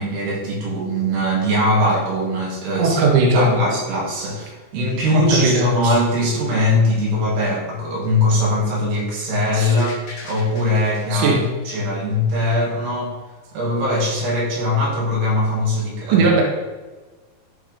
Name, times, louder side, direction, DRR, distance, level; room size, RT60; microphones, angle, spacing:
voice 1, 0.0-3.0 3.3-11.4 11.7-13.1 13.5-16.3, left 1 dB, 80° right, -3 dB, 4.4 m, -21 dB
voice 2, 2.8-3.6 5.1-5.9 9.5-9.7 11.1-11.4 16.1-16.4, right 3 dB, 60° right, -1 dB, 2.7 m, -17 dB
sound 1, 9.6-12.5 12.9-13.0, left 2 dB, 40° left, 1.1 m, -40 dB
13.5 x 4.7 x 5.1 m, 1.3 s
omnidirectional pair, 4.6 m